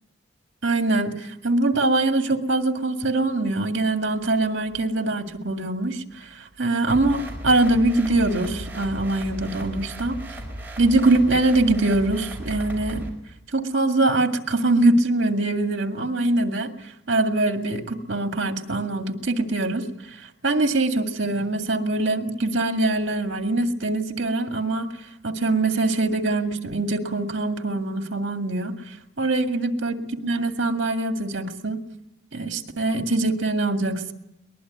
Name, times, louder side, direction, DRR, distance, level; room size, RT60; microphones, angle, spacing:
voice 1, 0.6-10.2 10.8-13.1 13.5-16.7 17.1-19.8 20.2-24.9 25.2-31.8 32.3-34.1, right 2 dB, 60° right, 5 dB, 2.1 m, -23 dB
sound 1, 6.9-13.1, right 1 dB, 10° right, 5.1 m, -35 dB
22.0 x 20.5 x 9.3 m, 0.85 s
head